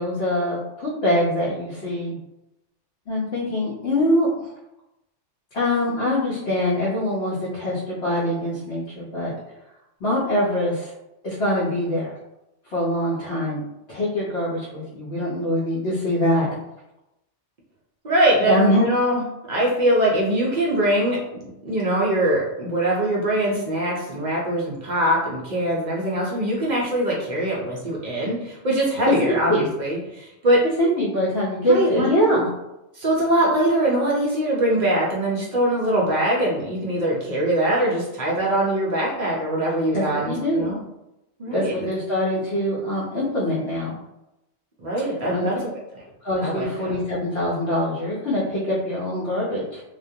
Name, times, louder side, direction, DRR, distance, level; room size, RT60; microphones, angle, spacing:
voice 1, 0.0-2.2 3.1-4.5 5.5-9.3 10.0-10.9 11.2-12.1 12.7-13.6 13.9-16.6 18.5-18.8 29.5-29.7 30.8-32.5 39.9-40.7 41.5-43.9 45.3-45.5 46.2-49.8, left 1 dB, 65° left, -7 dB, 0.9 m, -23 dB
voice 2, 18.0-30.6 31.6-32.4 32.9-40.8 41.4-41.9 44.8-46.0 46.4-47.0, right 1 dB, 55° right, -4 dB, 0.5 m, -22 dB
2.2 x 2.1 x 2.6 m, 0.90 s
omnidirectional pair, 1.2 m